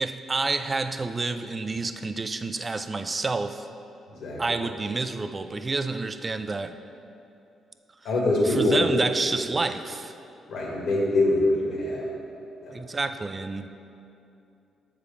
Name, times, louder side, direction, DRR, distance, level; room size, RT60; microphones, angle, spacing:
voice 1, 0.0-3.7 4.4-6.8 8.4-10.1 12.7-13.7, right 3 dB, 25° right, 10 dB, 0.4 m, -29 dB
voice 2, 8.0-8.8 10.5-12.1 12.6-12.7, left 2 dB, 75° left, -4 dB, 2.1 m, -24 dB
7.0 x 4.8 x 7.0 m, 2.7 s
cardioid pair, 90°, 0 cm